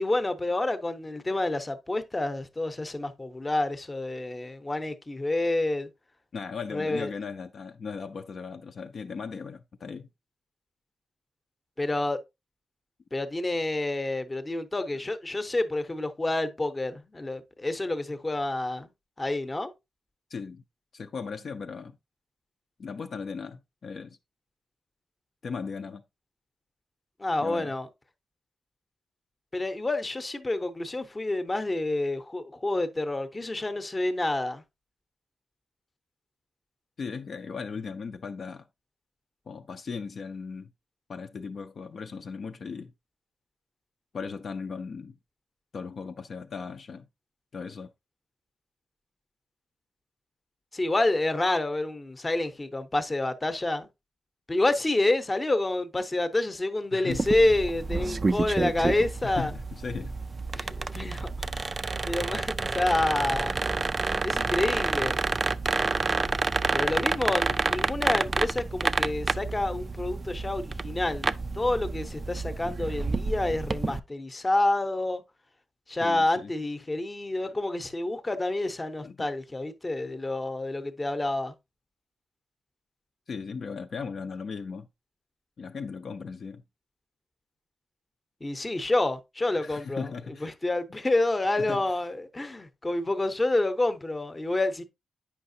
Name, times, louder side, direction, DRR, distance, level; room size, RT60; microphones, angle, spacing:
voice 1, 0.0-5.9 6.7-7.1 11.8-12.2 13.1-18.9 19.2-19.7 27.2-27.9 29.5-34.6 50.7-53.9 54.5-59.5 60.5-61.8 62.0-63.6 64.2-65.2 66.7-75.2 75.9-81.5 88.4-90.1 90.4-94.8, left 2 dB, 20° left, 0.7 m, -28 dB
voice 2, 6.3-10.1 20.3-20.6 20.9-22.0 22.8-24.2 25.4-26.0 27.4-27.7 37.0-38.7 39.5-40.7 41.1-42.9 44.1-45.2 45.7-47.1 47.5-47.9 56.9-57.3 59.2-60.1 61.8-62.0 76.0-76.5 79.0-79.3 83.3-84.9 85.6-86.6 89.6-90.5 91.6-91.8, left 5 dB, 50° left, 0.5 m, -37 dB
sound 1, 57.1-74.0, right 3 dB, 30° right, 0.3 m, -29 dB
8.7 x 5.6 x 2.7 m
wide cardioid pair, 140°, 0 cm